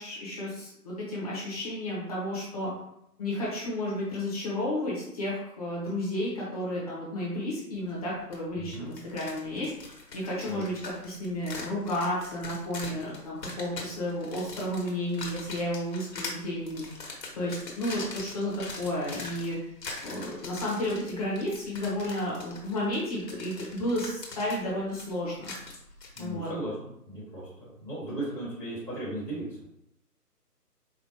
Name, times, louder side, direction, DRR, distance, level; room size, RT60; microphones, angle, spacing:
voice 1, 0.0-2.7 3.2-10.8 11.0-16.8 17.3-19.7 20.0-25.5 26.2-26.5, left 1 dB, 25° left, -6 dB, 1.0 m, -32 dB
sound 1, 8.3-8.4 8.7-26.2, left 3 dB, 80° left, 1.3 m, -42 dB
voice 2, 8.6-8.9 10.5-10.6 26.1-29.6, right 1 dB, 15° right, -16 dB, 0.7 m, -36 dB
4.9 x 2.7 x 2.8 m, 0.81 s
figure-of-eight pair, 155°, 49 cm